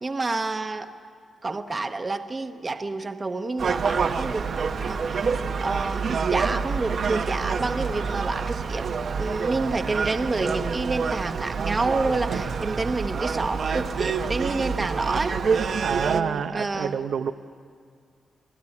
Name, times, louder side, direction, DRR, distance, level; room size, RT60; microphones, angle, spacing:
voice 1, 0.0-0.9 1.4-4.5 4.8-5.3 5.6-8.9 9.2-15.4 16.0-17.0, right 3 dB, 20° right, 7 dB, 1.0 m, -29 dB
Gull seagull, 3.6-16.2, right 5 dB, 45° right, 0.9 m, -27 dB
voice 2, 15.8-17.3, right 7 dB, 75° right, 8 dB, 0.8 m, -28 dB
28.5 x 18.0 x 9.8 m, 2.1 s
wide cardioid pair, 180°, 0 cm